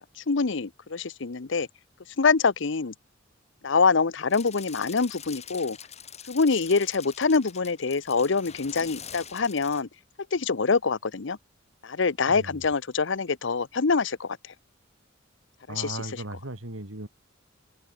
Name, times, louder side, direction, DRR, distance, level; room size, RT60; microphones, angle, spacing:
voice 1, 0.3-1.7 2.2-2.9 3.6-5.8 6.3-9.9 10.3-11.4 11.8-14.4 15.7-16.2, left 4 dB, 65° left, 0.8 m, -25 dB
sound 1, 4.3-9.8, left 8 dB, 35° left, 5.6 m, -44 dB
voice 2, 12.3-12.6 15.7-17.1, right 2 dB, 90° right, 2.9 m, -37 dB
head